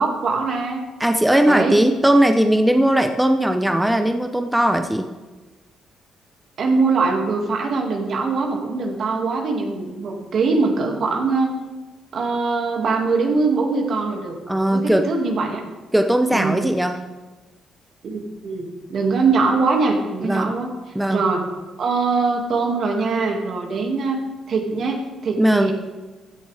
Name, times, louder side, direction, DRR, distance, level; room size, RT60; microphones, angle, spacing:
voice 1, 0.0-0.9 1.4-1.8 6.6-11.5 12.1-14.4 14.7-15.6 16.3-16.7 18.0-20.7 21.1-21.4 21.8-25.7, right 4 dB, 60° right, 1 dB, 2.2 m, -22 dB
voice 2, 1.0-5.1 14.5-15.1 15.9-17.0 20.2-20.5 20.9-21.2 25.4-25.7, right 1 dB, 5° right, 6 dB, 0.7 m, -18 dB
15.5 x 10.5 x 3.5 m, 1.2 s
cardioid pair, 90°, 0 cm